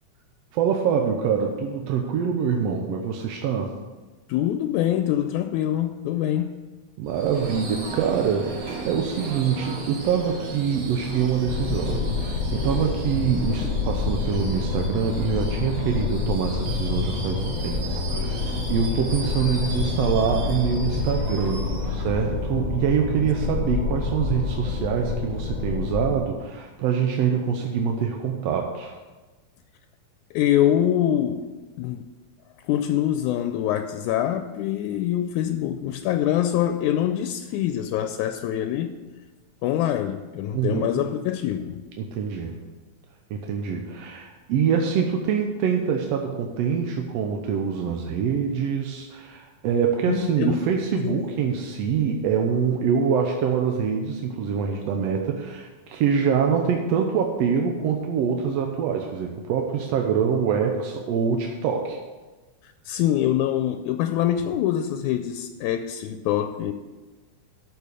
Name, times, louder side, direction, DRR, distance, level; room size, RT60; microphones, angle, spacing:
voice 1, 0.5-3.7 7.0-28.9 40.5-40.9 42.0-42.6 43.3-62.0, right 7 dB, 70° right, 1.7 m, -25 dB
voice 2, 4.3-6.6 30.3-31.5 31.8-32.1 32.7-38.9 39.6-41.8 50.1-50.6 51.0-51.1 62.9-66.7, left 11 dB, 80° left, 1.9 m, -24 dB
Subway metro underground / Screech, 7.1-23.0, right 3 dB, 50° right, 2.0 m, -37 dB
sound 1, 11.4-26.2, left 4 dB, 35° left, 1.3 m, -28 dB
12.5 x 5.7 x 6.7 m
omnidirectional pair, 3.5 m